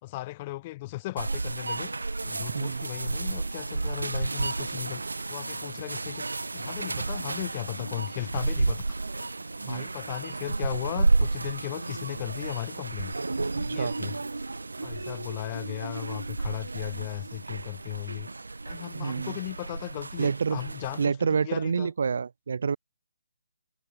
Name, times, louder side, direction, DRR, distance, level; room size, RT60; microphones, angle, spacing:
voice 1, 0.0-5.0 5.3-6.3 6.5-8.8 9.6-13.1 13.6-14.1 14.8-18.3 18.7-21.9, left 18 dB, 30° left, 4.4 m, -37 dB
sound 1, 1.2-21.1, right 3 dB, 80° right, 2.2 m, -32 dB
voice 2, 2.3-2.9 9.7-9.9 13.5-13.9 18.9-19.4 20.2-20.6 21.0-22.8, right 5 dB, 60° right, 2.8 m, -28 dB
figure-of-eight pair, 140°, 0 cm